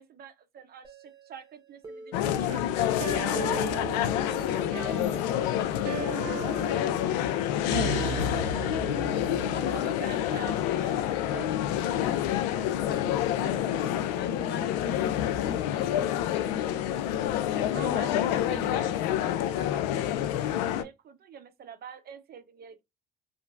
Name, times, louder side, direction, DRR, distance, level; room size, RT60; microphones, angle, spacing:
voice 1, 0.0-3.1 9.7-12.7 17.7-22.8, right 7 dB, 50° right, 0.7 m, -46 dB
sound 1, 0.8-5.5, right 2 dB, 20° right, 1.3 m, -49 dB
sound 2, 2.1-20.8, left 11 dB, 85° left, 0.4 m, -28 dB
sound 3, 3.0-10.0, right 7 dB, 85° right, 0.6 m, -37 dB
voice 2, 4.2-7.6 8.3-8.6 9.5-9.9 12.8-19.0, left 7 dB, 50° left, 0.8 m, -40 dB
2.8 x 2.5 x 2.5 m
hypercardioid pair, 65°, 21 cm